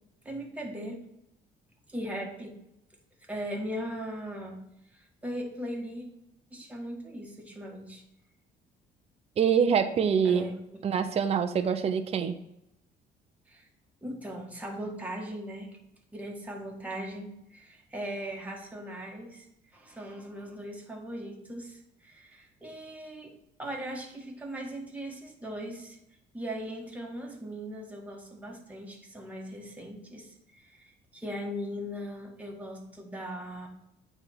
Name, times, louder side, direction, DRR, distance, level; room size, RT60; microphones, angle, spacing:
voice 1, 0.2-1.0 1.9-2.6 3.3-4.6 4.9-6.1 6.5-8.0 10.2-10.9 13.5-13.7 14.0-15.8 16.1-19.5 19.7-26.0 26.3-33.7, equal, 10° right, 0 dB, 1.7 m, -39 dB
voice 2, 9.4-10.5 10.8-12.4, right 7 dB, 35° right, 7 dB, 0.6 m, -25 dB
8.7 x 3.4 x 5.8 m, 0.81 s
cardioid pair, 110°, 17 cm